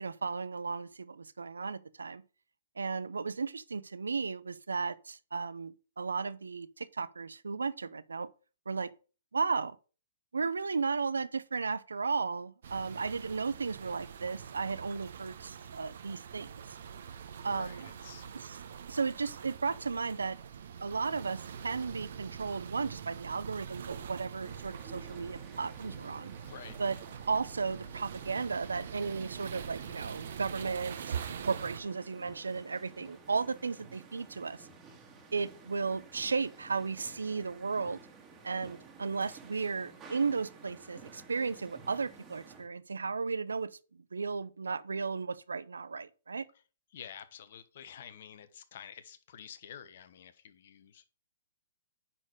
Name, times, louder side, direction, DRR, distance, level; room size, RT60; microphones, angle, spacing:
voice 1, 0.0-2.2 2.8-8.3 8.7-8.9 9.3-9.8 10.3-16.5 17.4-17.8 18.3-18.6 18.9-20.4 20.8-26.3 26.8-27.0 27.3-34.7 35.3-38.0 38.4-46.5, right 4 dB, 80° right, 0.6 m, -35 dB
sound 1, 12.6-31.8, right 7 dB, 60° right, 1.1 m, -44 dB
voice 2, 17.4-18.3 26.4-26.8 46.9-51.0, left 8 dB, 55° left, 1.0 m, -49 dB
sound 2, 24.4-42.7, right 4 dB, 20° right, 2.0 m, -53 dB
9.9 x 4.3 x 4.8 m
figure-of-eight pair, 120°, 0 cm